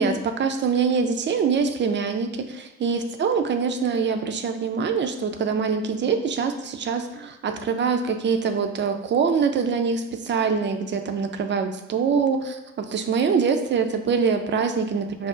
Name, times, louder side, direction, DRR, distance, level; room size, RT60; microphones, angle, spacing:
voice 1, 0.0-15.3, right 5 dB, 30° right, 6 dB, 0.4 m, -24 dB
5.5 x 2.1 x 2.4 m, 0.95 s
hypercardioid pair, 45°, 40 cm